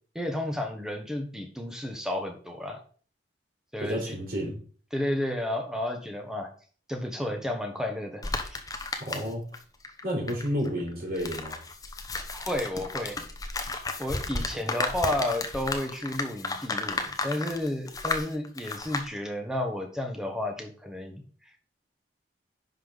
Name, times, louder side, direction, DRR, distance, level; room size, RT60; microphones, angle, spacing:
voice 1, 0.1-2.8 3.7-4.2 4.9-6.5 6.9-8.6 12.3-13.2 14.0-21.2, left 1 dB, 5° right, 3 dB, 1.3 m, -32 dB
voice 2, 3.8-4.6 9.0-9.4 10.0-11.6 14.6-14.8, equal, 55° right, -2 dB, 3.9 m, -31 dB
sound 1, 8.2-9.6 9.8-19.1, left 3 dB, 20° left, 0.9 m, -33 dB
10.5 x 5.5 x 4.0 m, 0.43 s
head